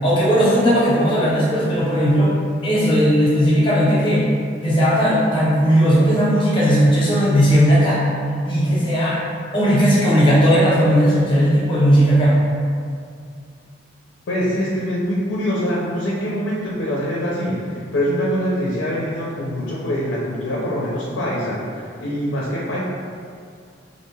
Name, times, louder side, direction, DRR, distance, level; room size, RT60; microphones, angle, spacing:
voice 1, 0.0-2.3 2.6-4.3 4.6-8.0 8.5-9.2 9.5-12.3, equal, 25° left, -7 dB, 0.7 m, -16 dB
voice 2, 14.3-22.8, equal, 70° left, -5 dB, 0.4 m, -24 dB
2.5 x 2.2 x 3.1 m, 2.2 s
head